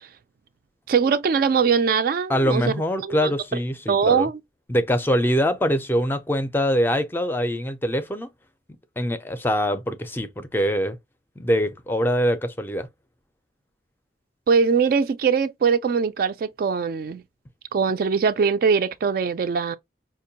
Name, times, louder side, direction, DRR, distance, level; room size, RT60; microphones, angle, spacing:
voice 1, 0.9-2.7 3.0-3.3 3.9-4.3 14.5-17.2 17.7-19.8, right 5 dB, 55° right, 0.3 m, -21 dB
voice 2, 2.3-4.3 4.7-8.3 9.0-11.0 11.4-12.9, equal, 10° left, 0.4 m, -23 dB
5.1 x 2.2 x 2.7 m
head